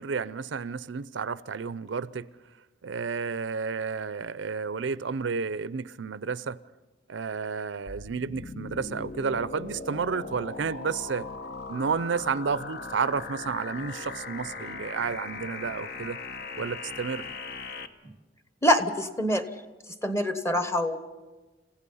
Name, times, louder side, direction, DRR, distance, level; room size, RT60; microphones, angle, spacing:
voice 1, 0.0-2.3 2.8-6.6 7.1-11.3 11.7-16.2 16.6-17.3, right 5 dB, 80° right, 0.5 m, -31 dB
sound 1, 7.9-17.9, left 3 dB, 60° left, 1.1 m, -39 dB
voice 2, 18.6-19.4 20.0-21.0, equal, 15° left, 1.1 m, -25 dB
30.0 x 15.5 x 5.5 m
head